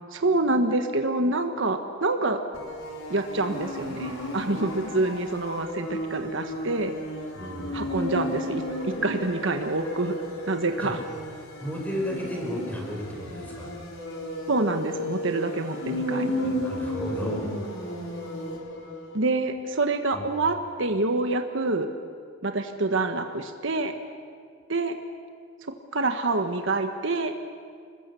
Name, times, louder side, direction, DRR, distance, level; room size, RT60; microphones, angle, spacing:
voice 1, 0.1-2.4 3.1-6.9 7.7-10.2 10.5-11.0 14.5-16.5 19.1-21.9 22.4-24.0 24.7-24.9 25.9-27.3, right 2 dB, 60° right, 6 dB, 1.3 m, -26 dB
sound 1, 2.5-19.1, equal, 75° left, 4.4 m, -34 dB
voice 2, 7.3-8.1 10.8-10.9 11.6-13.7 16.4-17.4 20.1-20.2, equal, 10° left, -1 dB, 5.0 m, -33 dB
27.5 x 21.5 x 7.0 m, 2.1 s
head